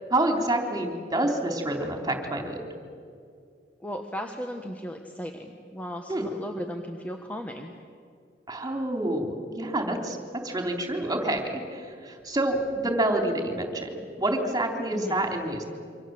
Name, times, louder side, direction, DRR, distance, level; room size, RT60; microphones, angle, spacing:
voice 1, 0.1-2.6 6.1-6.3 8.5-15.6, right 1 dB, 20° right, 3 dB, 3.5 m, -28 dB
voice 2, 3.8-7.7 14.9-15.2, equal, 10° left, 3 dB, 1.4 m, -36 dB
27.5 x 25.0 x 7.8 m, 2.3 s
head